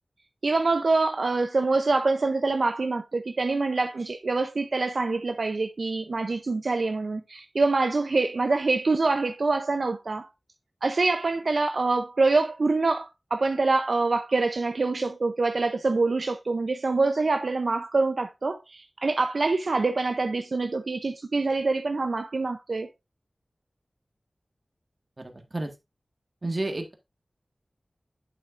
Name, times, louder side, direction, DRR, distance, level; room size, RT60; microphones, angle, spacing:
voice 1, 0.4-10.3 10.8-22.9, right 3 dB, 75° right, 0.6 m, -25 dB
voice 2, 26.4-26.9, right 2 dB, 40° right, 1.5 m, -29 dB
8.4 x 6.9 x 2.5 m
wide cardioid pair, 70°, 0 cm